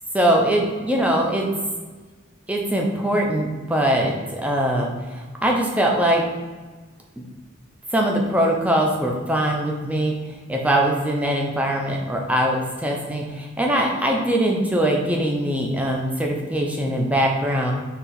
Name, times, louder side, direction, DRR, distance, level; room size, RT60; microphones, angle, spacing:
voice 1, 0.1-1.4 2.5-6.2 7.2-7.3 7.9-10.1 10.5-17.7, right 1 dB, 5° right, 0 dB, 0.5 m, -22 dB
4.3 x 3.0 x 3.9 m, 1.4 s
head